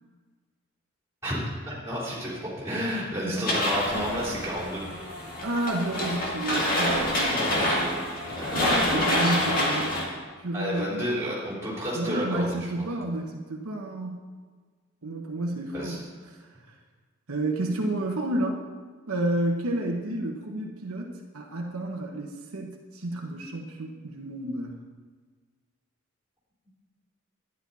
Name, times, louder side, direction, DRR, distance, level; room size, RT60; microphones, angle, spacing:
voice 1, 1.6-4.8 8.3-8.6 10.5-12.8 15.7-16.0, equal, 10° right, -6 dB, 3.6 m, -31 dB
voice 2, 3.2-3.6 5.4-7.6 8.5-9.9 10.4-11.0 11.9-14.2 15.0-16.7 17.3-18.6 19.1-24.8, right 1 dB, 80° right, 1 dB, 1.2 m, -31 dB
sound 1, 3.5-10.0, left 1 dB, 40° left, 2.1 m, -27 dB
11.5 x 10.0 x 4.2 m, 1.5 s
head